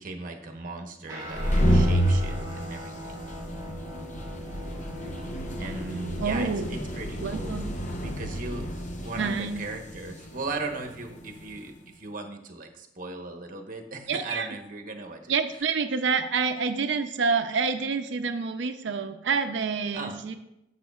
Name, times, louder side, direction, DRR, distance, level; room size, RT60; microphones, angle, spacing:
voice 1, 0.0-3.2 5.6-7.6 8.0-8.6 9.0-15.3 19.9-20.2, right 3 dB, 50° right, 4 dB, 1.0 m, -37 dB
Guitar, 1.1-10.7, equal, 20° right, 2.0 m, -43 dB
sound 1, 1.2-11.6, equal, 45° left, 0.8 m, -29 dB
voice 2, 6.2-6.7 7.2-7.7 9.2-9.6 14.1-14.5 15.3-20.3, right 5 dB, 75° right, 8 dB, 0.5 m, -27 dB
10.5 x 7.5 x 2.4 m, 0.87 s
head